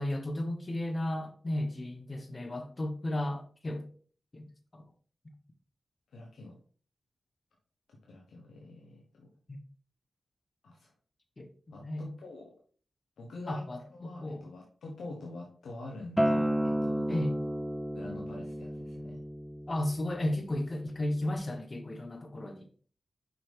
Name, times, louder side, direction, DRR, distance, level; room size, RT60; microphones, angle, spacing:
voice 1, 0.0-3.9 4.3-4.4 4.7-4.8 11.4-11.5 11.7-12.1 13.5-14.5 17.1-17.3 19.7-22.7, left 1 dB, 40° left, 1.1 m, -34 dB
voice 2, 6.1-6.6 8.0-9.3 10.6-10.9 11.7-12.5 13.2-17.2 17.9-19.2, left 2 dB, 90° left, 1.1 m, -46 dB
Acoustic guitar, 16.2-21.4, equal, 5° right, 0.6 m, -33 dB
5.9 x 5.3 x 3.5 m
cardioid pair, 45°, 0 cm